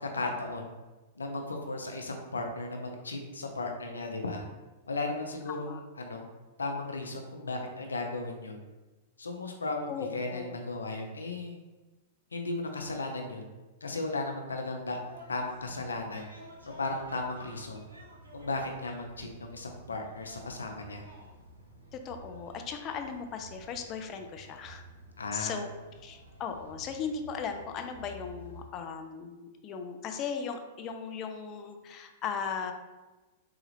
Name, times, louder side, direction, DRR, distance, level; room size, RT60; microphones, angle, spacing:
voice 1, 0.0-0.7 1.2-4.4 4.9-6.3 6.6-8.6 9.2-11.6 12.3-13.4 13.8-15.0 15.3-16.3 16.8-17.8 18.3-21.0 25.2-25.6, left 2 dB, 85° left, 2 dB, 0.6 m, -35 dB
voice 2, 9.9-10.6 21.9-24.8 25.3-25.7 26.0-29.4 29.6-32.7, left 6 dB, 35° left, 5 dB, 0.4 m, -37 dB
sound 1, 15.0-28.7, right 1 dB, 85° right, 0.8 m, -52 dB
4.0 x 2.4 x 3.1 m, 1.2 s
hypercardioid pair, 105°, 0 cm